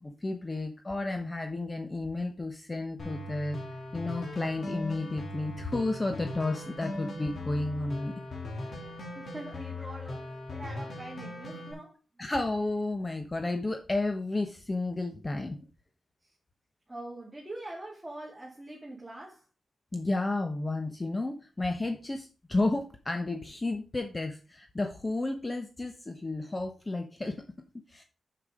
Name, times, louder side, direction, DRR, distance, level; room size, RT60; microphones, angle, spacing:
voice 1, 0.0-3.6 3.9-8.1 12.2-15.6 19.9-27.4 27.9-28.0, left 2 dB, 25° left, 1.1 m, -32 dB
sound 1, 3.0-11.7, left 1 dB, 60° left, 3.1 m, -39 dB
voice 2, 9.2-10.2 10.5-12.0 16.9-19.4, right 1 dB, 10° right, 2.5 m, -43 dB
7.0 x 6.4 x 4.9 m
cardioid pair, 95°, 0 cm